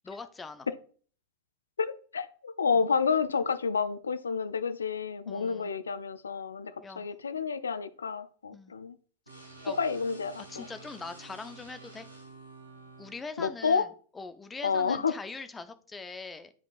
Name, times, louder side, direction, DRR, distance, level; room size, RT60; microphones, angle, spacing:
voice 1, 0.0-0.7 2.7-2.8 5.3-5.7 6.8-7.1 8.5-8.7 9.6-9.8 10.5-12.1 13.0-13.9 14.1-16.5, left 4 dB, 15° left, 0.6 m, -42 dB
voice 2, 1.8-8.9 9.7-10.7 13.4-13.9 14.6-15.1, left 5 dB, 70° left, 0.4 m, -30 dB
sound 1, 9.3-13.2, right 3 dB, 90° right, 1.7 m, -50 dB
9.9 x 5.0 x 2.4 m
figure-of-eight pair, 90°, 0 cm